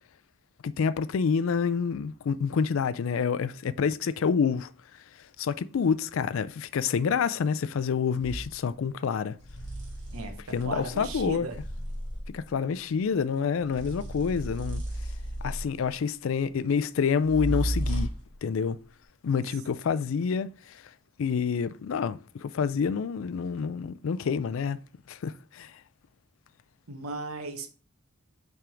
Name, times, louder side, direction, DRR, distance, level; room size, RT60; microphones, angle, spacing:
voice 1, 0.6-4.7 5.4-9.4 10.5-11.5 12.3-14.8 15.4-18.1 18.4-18.8 19.2-20.9 21.2-24.8 25.1-25.8, left 6 dB, 70° left, 0.4 m, -28 dB
sound 1, 8.2-8.5 9.4-12.4 13.6-15.9 17.2-18.3, right 1 dB, 55° right, 2.1 m, -34 dB
voice 2, 10.1-11.6 26.9-27.7, right 3 dB, 90° right, 1.0 m, -36 dB
5.7 x 3.6 x 5.0 m
head